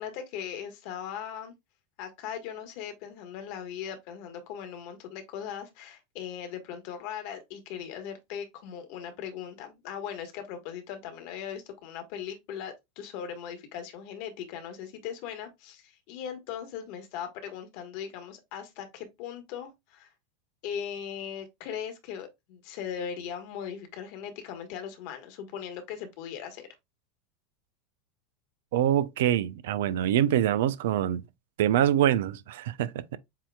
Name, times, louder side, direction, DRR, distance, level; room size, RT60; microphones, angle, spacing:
voice 1, 0.0-1.5 2.0-20.1 20.6-26.7, left 8 dB, 60° left, 1.4 m, -39 dB
voice 2, 28.7-31.2 31.6-32.9, right 11 dB, 70° right, 0.5 m, -24 dB
7.4 x 2.8 x 2.3 m
hypercardioid pair, 85°, 0 cm